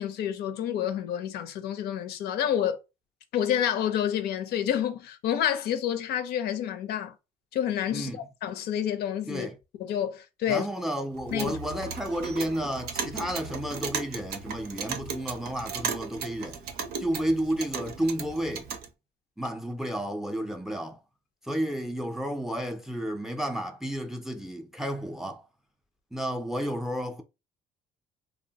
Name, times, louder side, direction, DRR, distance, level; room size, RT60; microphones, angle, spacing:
voice 1, 0.0-2.8 3.3-7.1 7.5-9.5 9.8-10.7 11.3-11.6, left 10 dB, 70° left, 0.5 m, -29 dB
voice 2, 10.5-16.6 17.0-18.7 19.4-21.0 21.4-25.4 26.1-27.2, equal, ahead, 0.4 m, -31 dB
Clock, 11.1-18.9, right 6 dB, 70° right, 0.6 m, -36 dB
2.9 x 2.1 x 2.7 m
cardioid pair, 110°, 17 cm